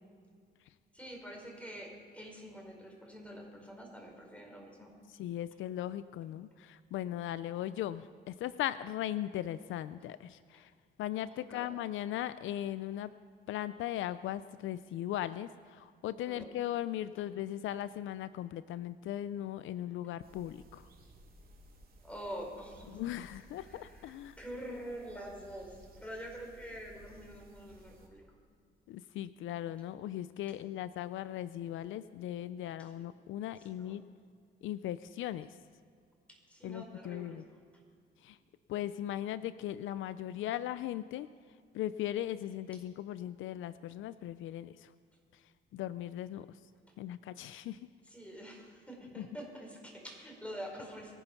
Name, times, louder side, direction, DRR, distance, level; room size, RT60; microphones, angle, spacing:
voice 1, 0.9-5.0 11.5-11.7 16.3-16.5 22.0-23.0 23.6-28.2 32.8-33.0 33.4-34.0 36.3-37.4 48.0-51.1, equal, 5° left, 0 dB, 5.0 m, -46 dB
voice 2, 5.2-10.7 11.0-13.1 13.5-20.9 22.9-24.4 28.9-34.0 34.6-35.5 36.6-37.4 38.2-38.4 38.7-41.3 41.7-44.9 45.7-46.5 47.0-47.8 49.2-49.3, left 12 dB, 80° left, 15 dB, 0.5 m, -38 dB
sound 1, 20.2-28.1, right 1 dB, 50° right, 2.9 m, -58 dB
23.0 x 8.9 x 5.9 m, 2.1 s
cardioid pair, 90°, 20 cm